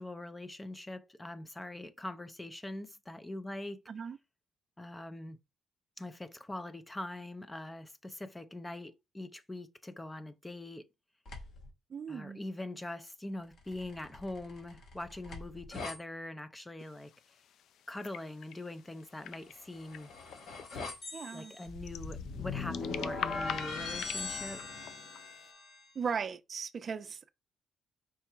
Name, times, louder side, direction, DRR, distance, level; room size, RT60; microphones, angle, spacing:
voice 1, 0.0-3.8 4.8-5.4 6.0-10.9 12.1-17.1 17.9-20.1 21.3-24.6, left 1 dB, 15° left, 0.5 m, -43 dB
voice 2, 3.9-4.2 11.9-12.4 21.1-21.6 25.9-27.3, right 6 dB, 45° right, 0.4 m, -37 dB
sound 1, 11.2-11.7 13.6-16.0 19.5-25.9, left 4 dB, 60° left, 1.5 m, -41 dB
sound 2, 16.8-25.5, left 10 dB, 75° left, 0.3 m, -46 dB
4.6 x 2.2 x 4.4 m
cardioid pair, 90°, 0 cm